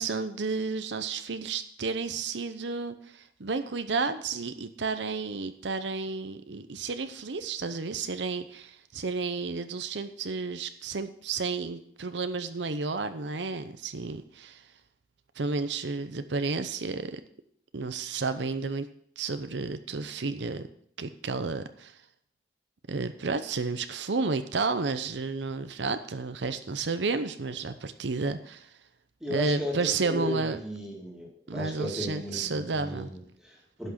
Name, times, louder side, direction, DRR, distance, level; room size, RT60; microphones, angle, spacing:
voice 1, 0.0-14.6 15.4-17.2 17.7-18.9 19.2-20.7 21.0-21.9 22.9-28.7 29.3-30.6 31.5-33.1, right 4 dB, 80° right, 10 dB, 0.7 m, -31 dB
voice 2, 29.2-33.9, left 1 dB, 5° right, -2 dB, 2.0 m, -36 dB
11.0 x 6.0 x 6.5 m, 0.65 s
head